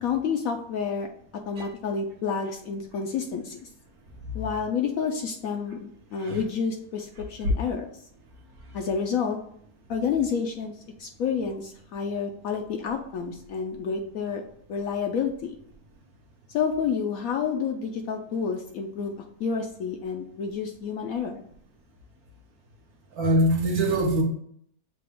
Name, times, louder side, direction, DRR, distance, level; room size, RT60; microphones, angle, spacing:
voice 1, 0.0-1.1 1.5-3.6 4.3-7.9 8.7-9.4 9.9-10.7 11.0-14.4 14.7-15.5 16.5-19.1 19.4-21.4, left 6 dB, 70° left, 4 dB, 0.9 m, -29 dB
voice 2, 23.1-24.2, right 1 dB, 65° right, 1 dB, 1.5 m, -23 dB
6.6 x 2.3 x 3.5 m, 0.67 s
omnidirectional pair, 1.7 m